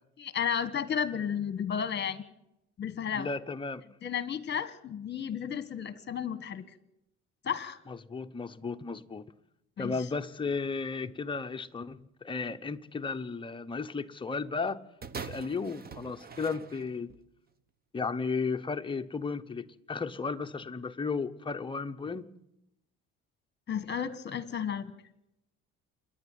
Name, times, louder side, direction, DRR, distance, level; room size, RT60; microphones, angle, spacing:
voice 1, 0.2-2.2 2.8-3.3 4.0-6.6 7.4-7.8 9.8-10.1 23.7-24.9, left 8 dB, 35° left, 1.5 m, -33 dB
voice 2, 3.1-3.8 7.9-9.3 9.8-14.8 15.2-17.1 17.9-22.3, left 4 dB, 15° left, 0.8 m, -34 dB
sound 1, 15.0-17.3 18.1-18.2, right 5 dB, 30° right, 1.0 m, -43 dB
27.5 x 11.0 x 9.2 m
cardioid pair, 140°, 30 cm